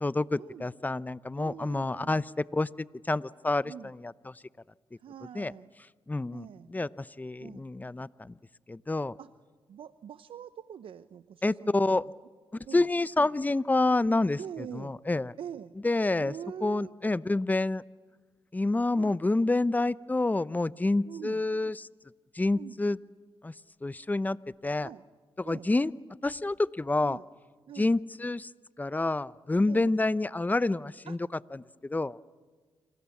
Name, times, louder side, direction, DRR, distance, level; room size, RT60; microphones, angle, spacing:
voice 1, 0.0-2.2 2.5-4.3 5.3-5.5 6.1-8.4 8.7-9.1 11.4-12.0 12.7-15.3 15.8-16.3 16.6-17.8 18.5-21.9 22.3-23.0 23.4-23.5 23.8-24.4 24.6-24.9 25.4-25.9 26.2-27.2 27.8-28.5 28.8-31.2 31.5-32.2, left 2 dB, 15° left, 18 dB, 0.7 m, -28 dB
voice 2, 1.4-2.2 3.6-3.9 5.0-5.7 6.3-6.7 7.4-7.7 9.2-9.3 9.7-12.1 12.7-12.9 14.4-14.9 15.4-15.7 16.2-16.9 18.9-19.2 21.1-21.4 22.5-22.8 24.8-25.0 25.4-25.7 27.0-27.2 27.7-27.9 29.7-29.9 31.1-31.2, right 9 dB, 70° right, 13 dB, 0.7 m, -44 dB
28.5 x 26.5 x 7.2 m, 1.4 s
cardioid pair, 70°, 9 cm